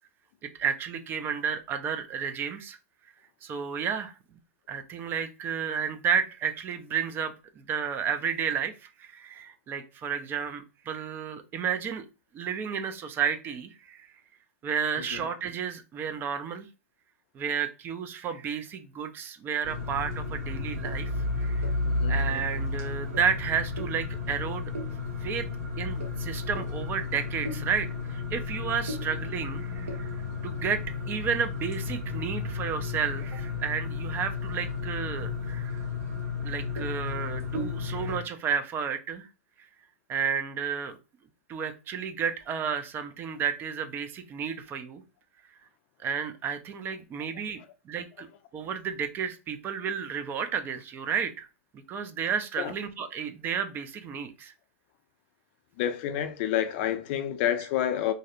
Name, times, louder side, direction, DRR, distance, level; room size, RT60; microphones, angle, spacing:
voice 1, 0.6-2.8 3.4-4.1 4.7-12.0 12.3-14.1 14.6-16.7 17.3-21.1 21.4-21.6 22.1-24.7 25.2-25.5 25.8-30.1 30.4-35.8 36.4-39.3 40.1-41.0 41.5-45.0 46.0-47.6 47.9-48.3 48.5-51.5 51.9-54.5, right 7 dB, 30° right, 0.3 m, -32 dB
sound 1, 19.6-38.2, left 3 dB, 70° right, 0.9 m, -33 dB
voice 2, 21.9-22.2 52.6-52.7 55.8-58.1, left 10 dB, 50° left, 0.4 m, -29 dB
2.6 x 2.0 x 2.4 m
hypercardioid pair, 110°, 8 cm